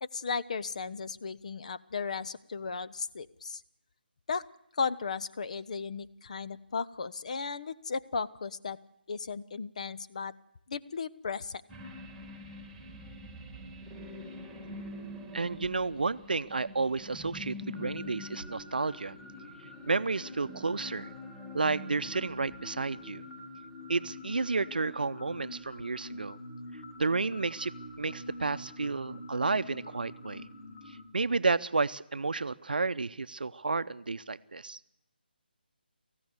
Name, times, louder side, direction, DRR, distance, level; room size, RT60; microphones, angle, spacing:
voice 1, 0.0-3.6 4.3-4.4 4.7-8.8 9.1-10.3 10.7-11.6, left 5 dB, 40° left, 13 dB, 0.8 m, -35 dB
sound 1, 11.7-23.5 23.8-23.9, left 1 dB, ahead, 2.3 m, -46 dB
voice 2, 15.3-19.2 19.9-21.1 21.5-23.2 23.9-26.4 27.0-27.7 28.0-30.4 31.1-34.8, right 3 dB, 60° right, 14 dB, 0.7 m, -31 dB
sound 2, 17.8-31.0, left 1 dB, 20° left, 3.9 m, -46 dB
28.5 x 15.5 x 8.0 m, 0.85 s
figure-of-eight pair, 150°, 6 cm